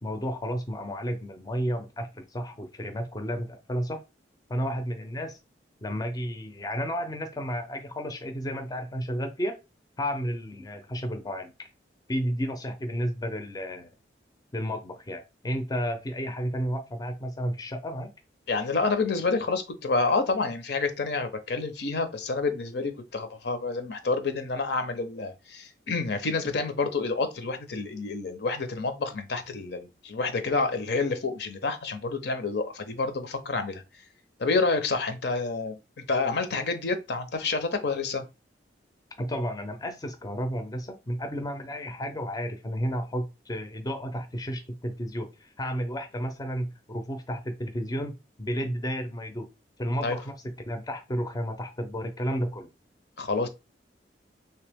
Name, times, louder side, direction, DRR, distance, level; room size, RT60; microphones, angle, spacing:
voice 1, 0.0-4.0 4.5-5.4 5.8-9.6 10.0-11.7 12.1-13.9 14.5-18.1 39.2-49.5 49.8-52.7, equal, 20° left, 0.5 m, -32 dB
voice 2, 18.5-33.8 34.4-35.8 36.1-38.2 50.0-50.2 53.2-53.5, left 3 dB, 65° left, 0.6 m, -28 dB
3.3 x 2.9 x 3.4 m
head